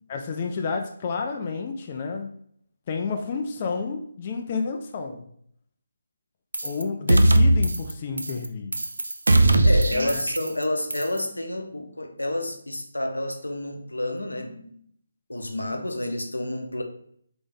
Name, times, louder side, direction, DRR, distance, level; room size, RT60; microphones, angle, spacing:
voice 1, 0.1-2.3 2.9-5.3 6.6-8.7 9.9-10.3, left 4 dB, 35° left, 3 dB, 0.5 m, -30 dB
sound 1, 6.5-6.8 7.1-7.9 8.2-8.5 8.7-10.6 10.9-11.2, right 1 dB, 75° right, 0.5 m, -19 dB
voice 2, 9.6-14.8 15.3-16.8, left 1 dB, 90° left, 4 dB, 0.8 m, -29 dB
4.0 x 3.4 x 3.5 m, 0.65 s
figure-of-eight pair, 150°, 0 cm